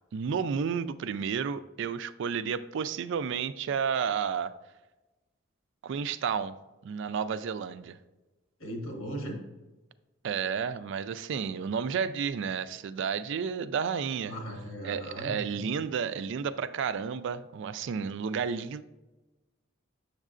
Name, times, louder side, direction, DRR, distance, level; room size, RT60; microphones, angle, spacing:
voice 1, 0.1-4.5 5.8-6.5 6.8-8.0 10.2-14.4 14.8-18.8, right 6 dB, 65° right, 14 dB, 0.3 m, -31 dB
voice 2, 8.6-9.4 14.2-15.6, equal, 80° left, 1 dB, 1.6 m, -38 dB
7.1 x 6.5 x 2.5 m, 1.1 s
head